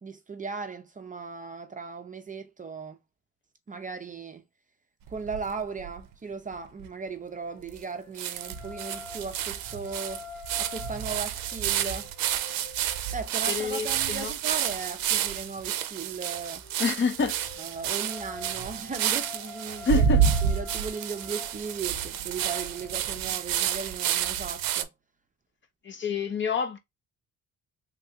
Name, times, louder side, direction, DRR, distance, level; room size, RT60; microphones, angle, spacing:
voice 1, 0.0-3.0 3.7-4.4 5.1-10.2 10.6-12.1 13.1-16.6 17.6-20.0 20.4-24.9, right 5 dB, 25° right, 0.5 m, -37 dB
sound 1, 5.1-6.0 6.5-6.6 6.8-6.9 7.8-7.9 8.2-24.8, right 9 dB, 85° right, 0.5 m, -29 dB
sound 2, 7.0-15.2 16.4-23.2, left 3 dB, 55° left, 1.3 m, -47 dB
voice 2, 13.5-14.3 16.8-17.4 19.8-20.2 25.8-26.8, left 5 dB, 35° left, 0.5 m, -27 dB
3.2 x 2.4 x 2.7 m
cardioid pair, 115°, 33 cm